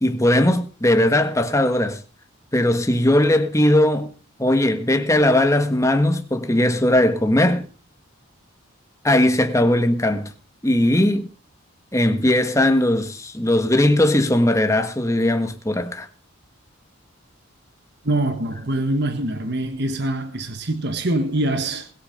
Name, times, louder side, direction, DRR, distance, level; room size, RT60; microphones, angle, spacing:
voice 1, 0.0-2.0 2.5-4.1 4.4-7.7 9.0-10.3 10.6-11.3 11.9-16.1, left 1 dB, 15° left, 1.5 m, -19 dB
voice 2, 18.0-21.9, right 1 dB, 50° right, 1.5 m, -24 dB
21.0 x 8.4 x 5.4 m
head